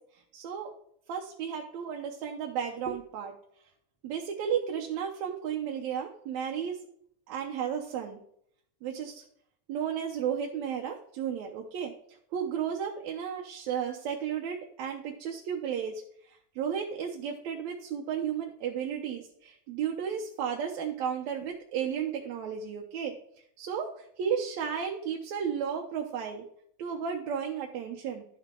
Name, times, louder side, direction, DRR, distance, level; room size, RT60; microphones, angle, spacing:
voice 1, 0.3-0.7 1.1-3.3 4.0-6.8 7.3-8.2 8.8-9.2 9.7-11.9 12.3-23.2 23.6-26.4 26.8-28.3, right 8 dB, 75° right, 1 dB, 2.1 m, -33 dB
12.0 x 6.6 x 3.7 m, 0.67 s
omnidirectional pair, 3.4 m